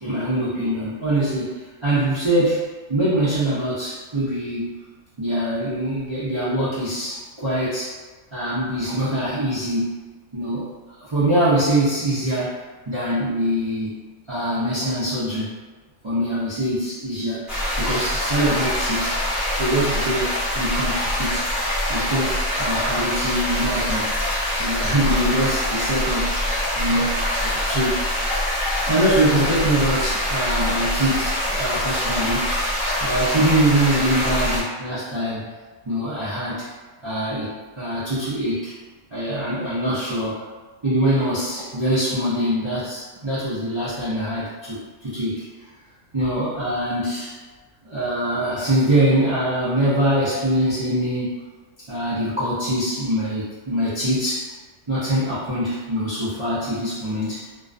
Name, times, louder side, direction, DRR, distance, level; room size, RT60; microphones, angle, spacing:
voice 1, 0.0-2.6 2.9-4.7 5.2-8.0 8.3-10.0 10.3-14.0 14.3-15.5 16.0-17.4 17.8-19.2 19.5-21.5 21.9-24.1 24.6-26.3 26.8-28.0 28.3-28.5 28.8-32.5 33.0-35.5 35.9-36.7 37.0-38.7 39.1-40.4 40.8-45.4 46.1-47.3 47.8-51.5 51.9-54.5 54.9-57.5, right 1 dB, 40° right, -12 dB, 0.4 m, -23 dB
sound 1, 17.5-34.6, equal, ahead, 0.8 m, -24 dB
2.4 x 2.2 x 2.5 m, 1.3 s
omnidirectional pair, 1.3 m